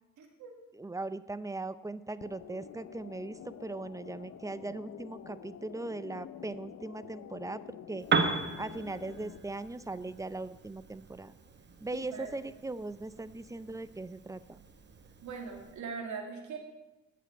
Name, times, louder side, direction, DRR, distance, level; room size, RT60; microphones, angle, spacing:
voice 1, 0.2-0.5 11.9-12.3 15.2-16.6, right 5 dB, 70° right, 2 dB, 2.2 m, -41 dB
voice 2, 0.7-8.1 8.6-11.3 11.8-14.6, right 2 dB, 10° right, 15 dB, 0.5 m, -39 dB
sound 1, 2.2-9.4, left 9 dB, 55° left, 0.7 m, -48 dB
Piano, 8.0-15.8, right 4 dB, 35° right, 1.2 m, -37 dB
8.8 x 7.6 x 7.9 m, 1.0 s
cardioid pair, 90°, 30 cm